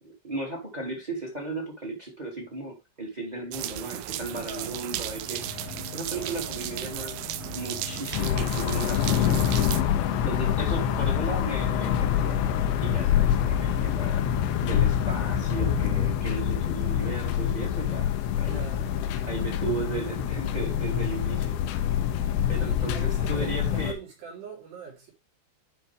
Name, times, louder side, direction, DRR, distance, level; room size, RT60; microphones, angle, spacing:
voice 1, 0.0-5.6 5.9-7.2 7.5-9.4 10.1-12.4 12.8-14.2 14.6-18.1 18.3-18.6 19.2-21.6 22.5-24.0, right 3 dB, 15° right, 1.8 m, -35 dB
sound 1, 3.5-9.8, right 14 dB, 85° right, 2.9 m, -35 dB
voice 2, 4.3-4.8 8.0-8.4 10.4-11.0 18.3-18.9 22.6-25.1, right 6 dB, 70° right, 6.0 m, -43 dB
sound 2, 4.8-16.6, left 5 dB, 70° left, 1.7 m, -42 dB
sound 3, 8.1-23.9, left 10 dB, 85° left, 3.2 m, -26 dB
11.0 x 5.6 x 3.4 m
omnidirectional pair, 5.1 m